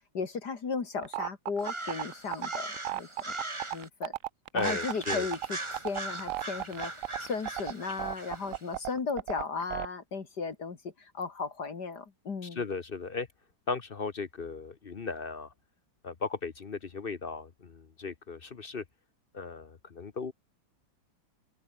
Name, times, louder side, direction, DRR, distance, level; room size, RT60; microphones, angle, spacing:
voice 1, 0.1-3.1 3.7-4.1 4.5-12.6, left 5 dB, 60° left, 2.7 m, -36 dB
sound 1, 1.0-9.9, right 13 dB, 75° right, 0.7 m, -35 dB
sound 2, 1.6-3.9 4.6-8.6, right 2 dB, 15° right, 2.3 m, -39 dB
voice 2, 4.5-5.3 12.5-13.3 13.7-15.5 16.0-18.8 19.3-20.3, left 4 dB, 40° left, 0.9 m, -36 dB
open air
omnidirectional pair, 2.1 m